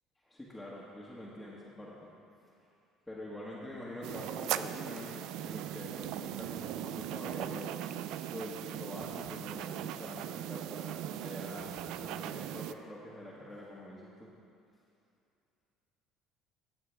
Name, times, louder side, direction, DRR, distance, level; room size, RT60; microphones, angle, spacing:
voice 1, 0.2-2.2 3.1-14.4, left 1 dB, 10° left, -8 dB, 1.7 m, -45 dB
sound 1, 4.0-12.7, right 12 dB, 70° right, 0.3 m, -39 dB
14.0 x 7.2 x 3.5 m, 2.6 s
supercardioid pair, 80°, 0 cm